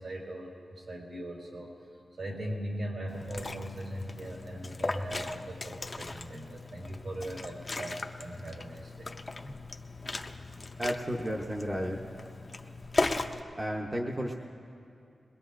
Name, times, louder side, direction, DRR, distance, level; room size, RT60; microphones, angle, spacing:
voice 1, 0.0-1.7 2.2-9.1 13.5-13.6, right 1 dB, 70° right, -3 dB, 4.3 m, -39 dB
Liquid, 3.1-13.4, left 2 dB, 30° left, 0.5 m, -37 dB
voice 2, 10.8-12.0 13.6-14.3, equal, 20° right, -1 dB, 0.8 m, -32 dB
22.0 x 20.5 x 2.5 m, 2.6 s
wide cardioid pair, 165°, 0 cm